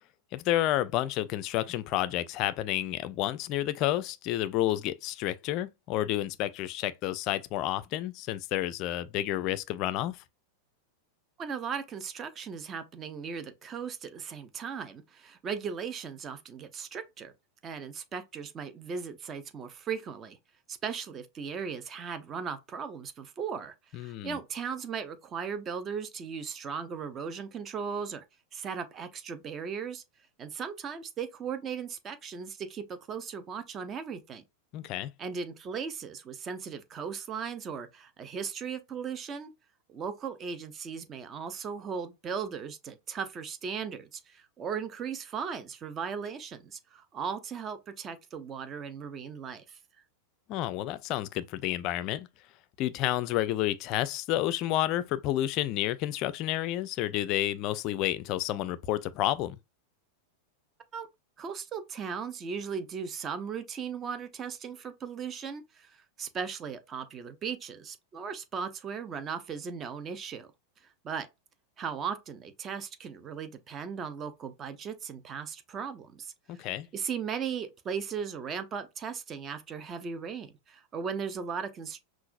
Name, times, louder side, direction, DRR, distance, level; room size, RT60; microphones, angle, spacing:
voice 1, 0.3-10.2 23.9-24.4 34.7-35.1 50.5-52.3 52.8-59.6 76.5-76.9, left 14 dB, 40° left, 0.4 m, -30 dB
voice 2, 11.4-17.3 17.6-20.4 20.7-28.2 28.5-30.0 30.4-34.4 35.2-39.5 39.9-49.8 60.9-61.1 61.4-70.5 71.0-71.3 71.8-76.6 76.9-82.0, right 6 dB, 25° right, 0.6 m, -37 dB
5.7 x 2.4 x 2.5 m
figure-of-eight pair, 90°, 0 cm